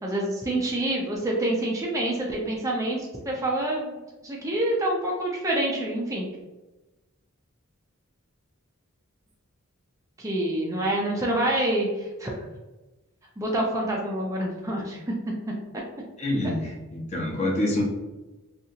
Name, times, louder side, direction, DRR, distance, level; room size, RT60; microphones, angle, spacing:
voice 1, 0.0-6.3 10.2-12.3 13.4-15.0 15.7-15.8 16.4-16.5, right 1 dB, 15° right, -2 dB, 0.4 m, -27 dB
voice 2, 16.2-17.8, left 1 dB, 30° left, -2 dB, 0.6 m, -27 dB
2.7 x 2.4 x 2.7 m, 1.1 s
head